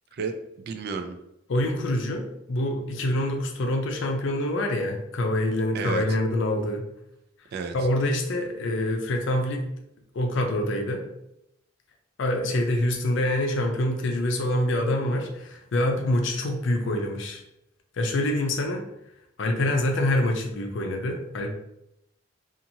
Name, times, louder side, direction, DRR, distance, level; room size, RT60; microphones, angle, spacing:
voice 1, 0.1-1.2 5.7-6.0 7.5-7.7, right 5 dB, 55° right, 7 dB, 0.3 m, -32 dB
voice 2, 1.5-6.9 7.7-9.7 10.1-11.0 12.2-17.4 18.0-18.8 19.4-21.5, left 1 dB, 65° left, 3 dB, 0.5 m, -26 dB
2.8 x 2.5 x 2.6 m, 0.82 s
head